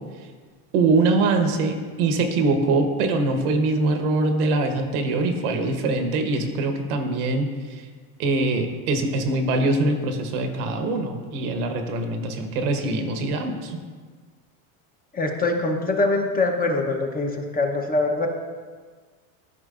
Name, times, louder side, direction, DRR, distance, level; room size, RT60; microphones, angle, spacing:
voice 1, 0.7-7.9 8.2-13.8, right 3 dB, 80° right, 5 dB, 1.2 m, -23 dB
voice 2, 15.1-18.3, left 2 dB, 20° left, 3 dB, 0.8 m, -23 dB
12.5 x 5.0 x 2.5 m, 1.5 s
supercardioid pair, 115°, 44 cm